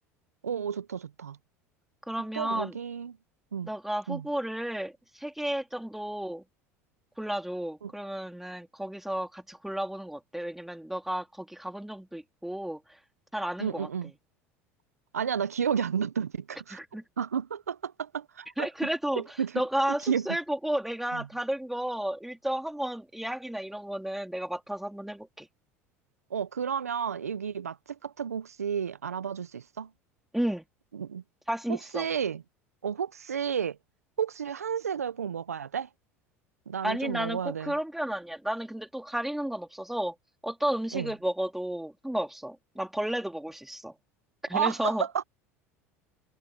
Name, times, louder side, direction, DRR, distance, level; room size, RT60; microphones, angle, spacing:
voice 1, 0.4-1.4 2.3-3.2 3.5-3.7 4.1-4.3 7.8-7.9 13.6-14.1 15.1-16.8 17.2-18.9 19.1-19.6 20.1-20.4 21.1-21.3 26.3-29.9 30.9-31.2 31.7-32.4 32.8-33.8 34.2-35.9 36.7-37.7 40.9-41.1 44.5-45.2, right 7 dB, 90° right, 1.0 m, -32 dB
voice 2, 2.1-2.7 3.6-6.4 7.2-13.0 13.3-13.9 16.7-17.0 18.6-19.2 19.5-25.5 30.3-30.6 31.5-32.1 36.8-40.1 40.4-43.9 44.4-45.1, right 1 dB, 5° right, 3.9 m, -32 dB
hypercardioid pair, 75°, 8 cm